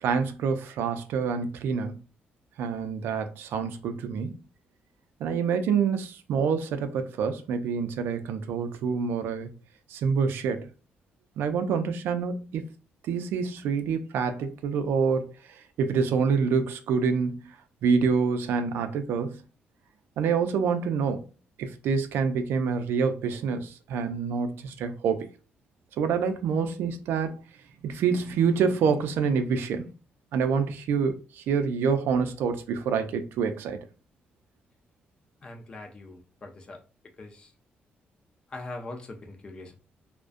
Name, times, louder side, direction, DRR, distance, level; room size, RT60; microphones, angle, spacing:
voice 1, 0.0-2.0 2.6-4.4 5.2-9.5 9.9-10.7 11.4-12.6 13.0-15.3 15.8-17.4 17.8-19.4 20.2-21.2 21.6-25.3 26.0-27.4 27.8-29.8 30.3-33.8, right 6 dB, 85° right, 0.3 m, -27 dB
voice 2, 35.4-36.8 37.2-37.5 38.5-39.7, left 2 dB, 25° left, 0.4 m, -41 dB
2.3 x 2.1 x 2.4 m
cardioid pair, 175°, 4 cm